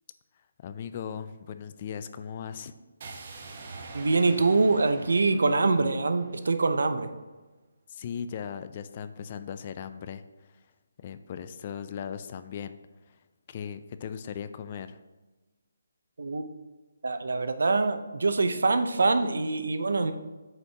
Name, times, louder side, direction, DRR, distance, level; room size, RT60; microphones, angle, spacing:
voice 1, 0.6-2.7 7.9-10.2 11.0-12.8 13.1-13.2 13.5-15.0, left 7 dB, 35° left, 11 dB, 0.3 m, -38 dB
sound 1, 3.0-7.1, right 3 dB, 45° right, 0.8 m, -45 dB
voice 2, 3.9-7.1 16.2-16.4 17.0-20.1, right 3 dB, 75° right, 9 dB, 0.6 m, -24 dB
8.0 x 4.4 x 2.8 m, 1.2 s
hypercardioid pair, 160°, 0 cm